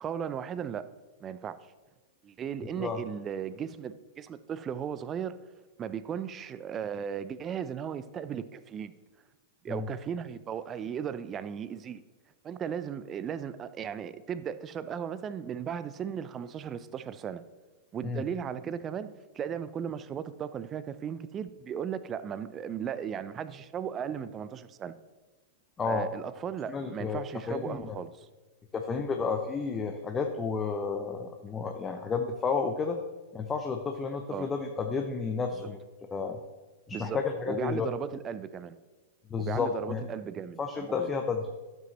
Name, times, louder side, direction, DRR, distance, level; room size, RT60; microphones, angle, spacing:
voice 1, 0.0-0.9 1.2-1.6 2.2-5.4 5.8-8.9 9.6-12.0 12.4-17.4 17.9-24.9 25.8-28.3 34.3-34.5 35.5-35.7 36.9-37.2 37.5-38.8 39.4-41.1, right 8 dB, 30° right, 14 dB, 0.5 m, -36 dB
voice 2, 26.7-27.2 27.5-28.0 28.7-33.0 33.3-35.8 36.1-36.4 36.9-37.9 39.3-40.0 40.6-41.5, left 5 dB, 20° left, 4 dB, 0.7 m, -31 dB
12.0 x 7.7 x 3.0 m, 1.3 s
figure-of-eight pair, 100°, 0 cm